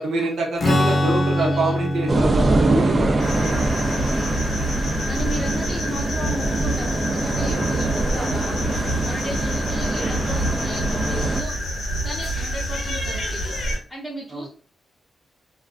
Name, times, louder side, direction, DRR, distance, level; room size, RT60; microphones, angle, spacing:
voice 1, 0.0-3.2 14.3-14.4, right 2 dB, 70° right, -1 dB, 0.8 m, -25 dB
Strum, 0.6-6.2, left 1 dB, 35° left, 0.6 m, -26 dB
voice 2, 0.8-1.7 4.0-4.4 5.1-11.5 12.0-13.5 13.9-14.5, equal, 5° right, -7 dB, 0.7 m, -35 dB
sound 1, 2.1-11.4, right 2 dB, 35° right, 0.4 m, -24 dB
sound 2, 3.2-13.8, equal, 85° left, 0.9 m, -27 dB
2.3 x 2.2 x 2.4 m, 0.40 s
wide cardioid pair, 130°, 0 cm